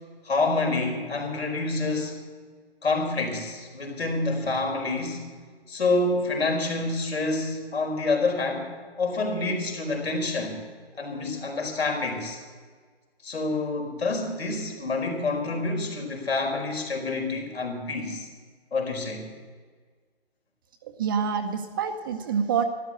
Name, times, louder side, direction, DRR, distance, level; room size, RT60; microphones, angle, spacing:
voice 1, 0.2-2.2 2.8-5.2 5.7-10.6 11.0-12.4 13.2-18.3 18.7-19.2, left 3 dB, 80° left, 3 dB, 4.8 m, -27 dB
voice 2, 21.0-22.7, right 6 dB, 20° right, 6 dB, 0.7 m, -26 dB
13.0 x 12.5 x 7.5 m, 1.5 s
hypercardioid pair, 160°, 31 cm